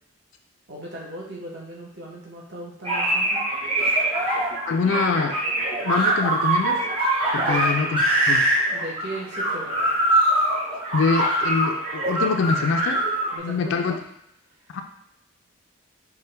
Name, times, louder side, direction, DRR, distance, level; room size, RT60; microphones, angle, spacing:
voice 1, 0.7-3.4 7.3-7.6 8.7-9.9 13.3-14.0, right 1 dB, 50° right, -3 dB, 0.9 m, -37 dB
sound 1, 2.8-13.4, right 1 dB, 25° right, 0.9 m, -23 dB
voice 2, 4.7-5.4 5.8-6.8 7.3-8.4 10.9-13.1 13.4-14.0 14.7-14.8, left 4 dB, 60° left, 5 dB, 0.4 m, -24 dB
4.4 x 2.2 x 3.2 m, 0.77 s
head